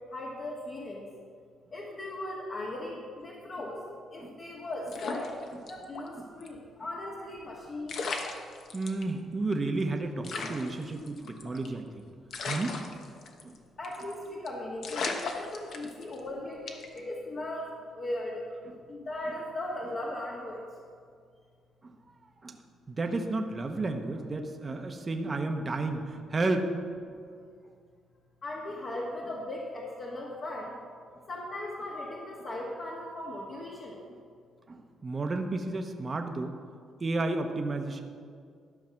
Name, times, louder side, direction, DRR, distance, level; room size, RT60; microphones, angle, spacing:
voice 1, 0.1-1.0 1.7-5.4 5.7-7.9 13.8-17.7 17.9-18.4 18.9-20.6 28.4-30.7 31.3-34.0, left 1 dB, 50° left, -4 dB, 1.6 m, -38 dB
sound 1, 4.9-6.1 6.4-6.5 7.5-7.6 7.9-9.0 9.5-9.6 9.8-9.9 10.2-11.8 12.3-13.6 13.8-14.1 14.5-14.6 14.8-16.2 16.7-17.0, left 4 dB, 65° left, 1.1 m, -36 dB
voice 2, 8.7-11.9 12.5-13.0 13.4-13.5 18.7-18.8 22.4-22.6 22.9-26.7 34.7-36.5 37.0-38.0, right 2 dB, 30° right, 4 dB, 0.9 m, -32 dB
12.5 x 5.8 x 5.9 m, 2.2 s
cardioid pair, 90°, 0 cm